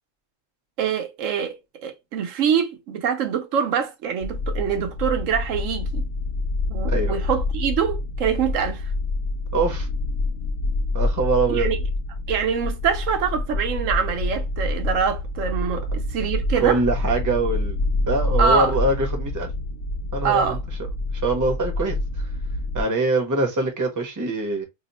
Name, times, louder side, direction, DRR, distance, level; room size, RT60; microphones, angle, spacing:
voice 1, 0.8-1.6 1.8-6.1 6.7-8.8 11.5-11.8 12.3-16.8 18.4-18.7 20.2-20.6, right 7 dB, 80° right, 1.0 m, -24 dB
sound 1, 4.2-22.8, left 2 dB, 65° left, 0.5 m, -27 dB
voice 2, 9.5-9.9 10.9-11.7 16.6-17.8 18.0-19.5 20.1-20.6 21.2-22.3 22.7-24.6, right 3 dB, 20° right, 0.6 m, -23 dB
2.8 x 2.0 x 4.0 m
omnidirectional pair, 1.3 m